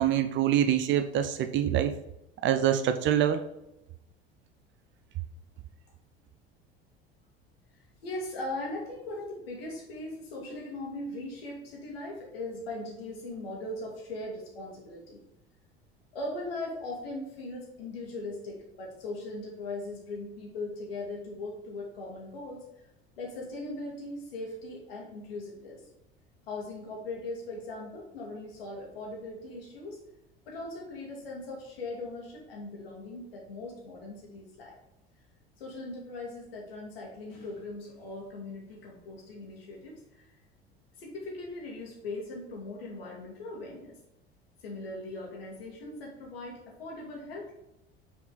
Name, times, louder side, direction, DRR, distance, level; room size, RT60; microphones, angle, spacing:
voice 1, 0.0-2.0 2.4-3.4, right 10 dB, 40° right, 9 dB, 0.6 m, -25 dB
voice 2, 8.0-15.2 16.1-22.6 23.2-25.9 26.5-30.0 30.5-34.7 35.6-40.2 41.0-44.0 44.6-47.5, left 2 dB, 70° left, -2 dB, 2.1 m, -39 dB
5.4 x 4.6 x 3.9 m, 0.87 s
figure-of-eight pair, 65°, 31 cm